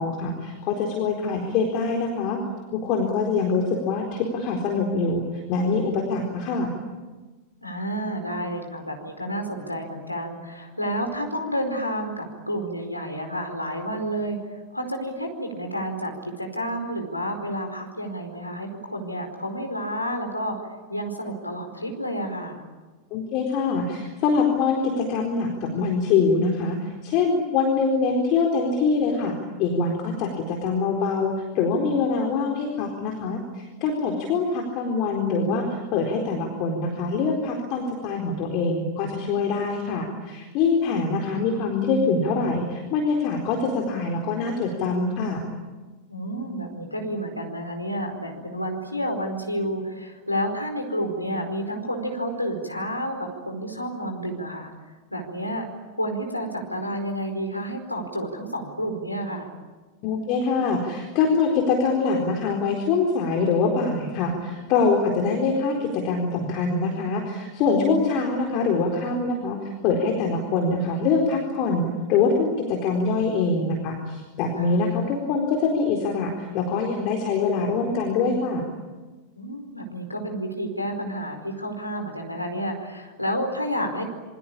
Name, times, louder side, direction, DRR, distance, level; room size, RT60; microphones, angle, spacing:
voice 1, 0.0-2.4 2.7-6.7 23.1-45.4 60.0-78.7, left 4 dB, 40° left, 2 dB, 4.1 m, -24 dB
voice 2, 7.6-20.6 20.9-22.6 30.0-30.3 46.1-54.7 55.1-55.6 56.0-59.5 74.6-74.8 79.4-84.0, equal, 85° left, 4 dB, 4.8 m, -30 dB
27.5 x 24.5 x 8.7 m, 1.3 s
figure-of-eight pair, 90°, 0 cm